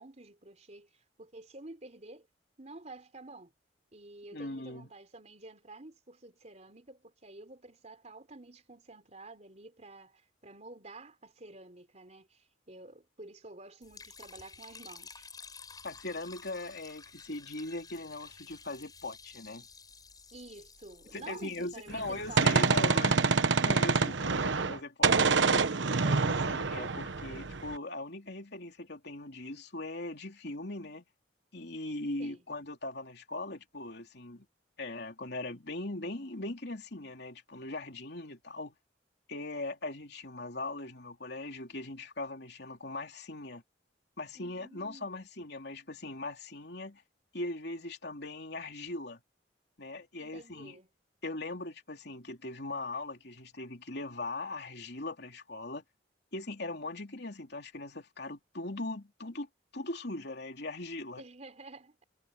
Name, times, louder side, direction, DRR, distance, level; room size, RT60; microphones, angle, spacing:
voice 1, 0.0-2.3 2.6-3.5 3.9-15.3 20.3-23.3 32.2-32.4 44.3-45.3 50.2-50.9 61.2-62.0, right 2 dB, 40° right, 4.0 m, -50 dB
voice 2, 4.3-4.9 15.8-19.7 21.1-23.2 23.6-31.0 31.5-34.4 34.8-38.7 39.3-43.6 44.2-47.0 47.3-49.2 49.8-50.8 51.2-55.8 56.3-59.5 59.7-61.2, left 2 dB, 60° left, 3.3 m, -40 dB
Liquid, 13.8-24.0, left 5 dB, 20° left, 7.2 m, -53 dB
Gunshot gunfire, 21.9-24.8 25.0-27.8, right 4 dB, 80° right, 1.0 m, -26 dB
head